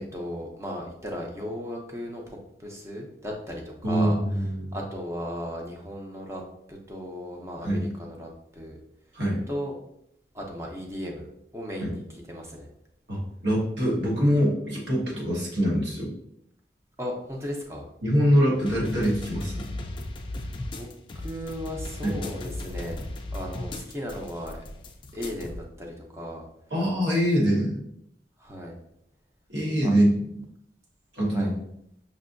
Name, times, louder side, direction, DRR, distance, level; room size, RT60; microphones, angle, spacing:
voice 1, 0.1-4.2 4.7-6.4 6.7-8.8 9.5-9.8 10.3-11.3 11.5-12.7 17.0-17.9 20.3-20.9 21.1-23.0 23.3-24.6 25.1-26.5 28.4-28.7 29.8-29.9 31.3-31.5, equal, 15° right, 0 dB, 0.6 m, -36 dB
voice 2, 3.8-4.8 7.6-7.9 9.1-9.4 11.8-11.9 13.1-16.1 18.0-19.7 22.0-22.2 26.7-27.9 29.5-30.1 31.1-31.5, equal, 80° right, -5 dB, 1.4 m, -24 dB
sound 1, 18.5-25.6, left 1 dB, 25° left, 0.3 m, -36 dB
5.4 x 2.6 x 2.5 m, 0.76 s
head